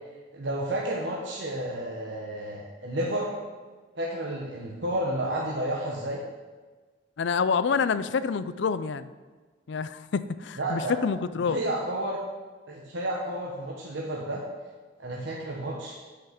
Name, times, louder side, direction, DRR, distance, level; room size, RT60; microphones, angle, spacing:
voice 1, 0.3-3.4 3.9-6.2 10.6-10.9 11.4-12.2 12.7-14.4 15.0-16.0, right 1 dB, 65° right, -3 dB, 1.1 m, -31 dB
voice 2, 7.2-9.1 9.7-11.6, left 5 dB, 65° left, 14 dB, 0.4 m, -27 dB
8.4 x 5.9 x 5.9 m, 1.4 s
head